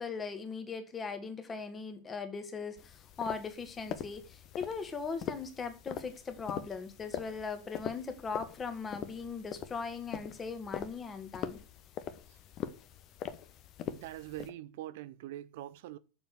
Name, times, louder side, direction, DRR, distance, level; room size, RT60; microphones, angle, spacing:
voice 1, 0.0-11.6, left 5 dB, 20° left, 1.9 m, -39 dB
sound 1, 2.8-14.5, left 9 dB, 35° left, 1.0 m, -43 dB
voice 2, 13.8-16.0, right 14 dB, 50° right, 0.7 m, -43 dB
7.2 x 7.1 x 8.1 m
figure-of-eight pair, 90°, 0 cm